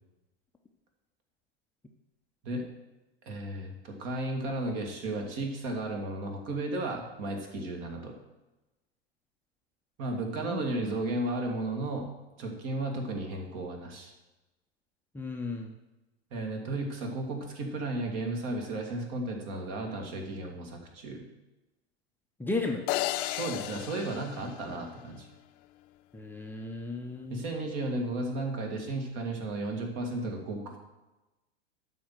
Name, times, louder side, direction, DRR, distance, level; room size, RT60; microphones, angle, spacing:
voice 1, 3.3-8.1 10.0-12.1 12.4-14.1 16.3-21.2 23.3-25.3 27.3-30.8, right 2 dB, 45° right, 2 dB, 2.3 m, -34 dB
voice 2, 15.1-15.7 22.4-22.9 26.1-27.5, left 3 dB, 5° left, 1 dB, 0.7 m, -34 dB
sound 1, 22.9-25.2, left 16 dB, 30° left, 0.4 m, -34 dB
12.0 x 4.3 x 7.7 m, 1.0 s
figure-of-eight pair, 90°, 32 cm